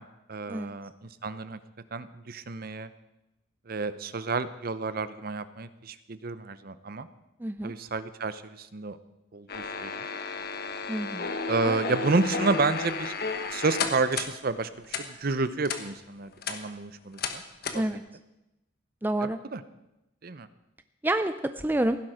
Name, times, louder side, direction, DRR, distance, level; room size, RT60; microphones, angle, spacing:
voice 1, 0.0-1.6 1.9-2.9 3.7-7.1 7.6-9.0 9.3-9.9 11.5-13.1 13.5-17.4 17.7-17.8 19.2-19.6 20.2-20.5, right 3 dB, 50° right, 13 dB, 0.7 m, -30 dB
voice 2, 7.4-7.7 10.9-11.4 11.6-11.9 17.7-18.0 19.0-19.4 21.0-22.0, right 1 dB, 10° right, 10 dB, 0.4 m, -28 dB
sound 1, 9.5-14.3 14.9-15.0 15.6-15.8 16.3-16.6 17.2-17.3 17.6-17.8, left 4 dB, 50° left, 1.3 m, -32 dB
16.0 x 12.0 x 5.0 m, 0.93 s
head